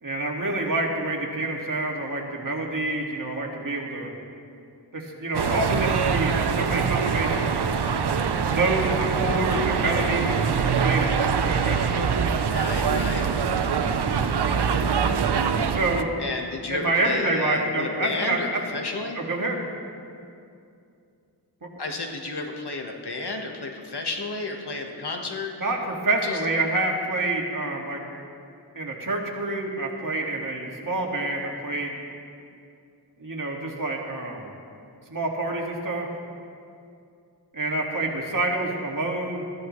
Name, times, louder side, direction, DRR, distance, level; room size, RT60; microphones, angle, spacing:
voice 1, 0.0-4.1 4.9-7.7 8.5-12.2 15.7-16.1 16.7-18.6 19.2-19.6 21.6-21.7 25.6-28.0 28.8-31.9 33.2-34.5 35.1-36.1 37.5-39.5, right 2 dB, 50° right, -1 dB, 2.0 m, -27 dB
sound 1, 5.3-16.0, right 6 dB, 70° right, 0.7 m, -24 dB
voice 2, 12.5-13.3 16.2-19.2 21.8-25.5 26.2-26.4, left 3 dB, 70° left, 2 dB, 1.5 m, -32 dB
20.0 x 14.0 x 3.2 m, 2.5 s
wide cardioid pair, 90°, 41 cm